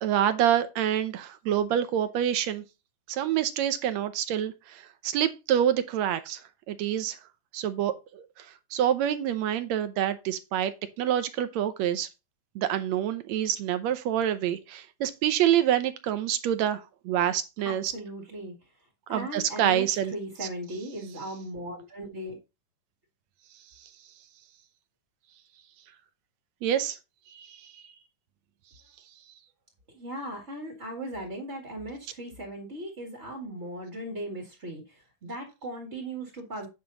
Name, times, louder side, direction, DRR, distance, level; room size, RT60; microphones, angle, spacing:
voice 1, 0.0-2.6 3.1-6.4 6.7-7.2 7.5-8.5 8.7-10.7 11.0-12.1 12.6-17.8 19.1-20.1 26.6-27.0 27.3-27.8, right 10 dB, 75° right, 1.9 m, -27 dB
voice 2, 17.6-22.4 29.9-36.7, right 1 dB, 25° right, 1.7 m, -38 dB
9.6 x 5.9 x 4.0 m
omnidirectional pair, 3.4 m